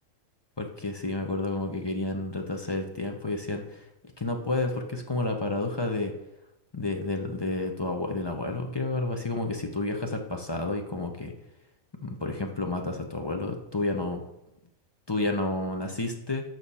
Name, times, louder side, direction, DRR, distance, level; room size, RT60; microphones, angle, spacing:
voice 1, 0.6-3.8 4.2-6.1 6.7-11.3 12.0-14.2 15.1-16.4, left 2 dB, 25° left, 3 dB, 0.6 m, -30 dB
6.7 x 6.2 x 5.5 m, 0.88 s
omnidirectional pair, 1.5 m